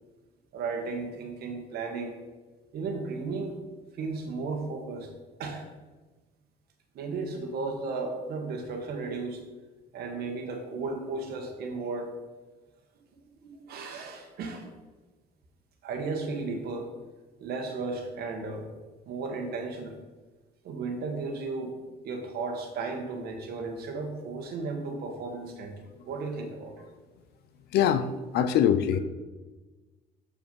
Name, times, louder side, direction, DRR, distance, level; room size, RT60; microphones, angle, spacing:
voice 1, 0.5-2.1 2.7-3.6 3.9-5.1 5.4-5.7 6.9-9.4 9.9-12.1 13.2-14.7 15.8-16.9 17.4-18.7 19.1-20.0 20.6-21.7 22.0-25.7 26.0-26.9 28.4-28.5, right 3 dB, 70° right, 4 dB, 1.4 m, -34 dB
voice 2, 27.7-28.1 28.3-29.0, left 9 dB, 75° left, 12 dB, 0.6 m, -22 dB
6.9 x 5.2 x 5.4 m, 1.3 s
cardioid pair, 110°, 17 cm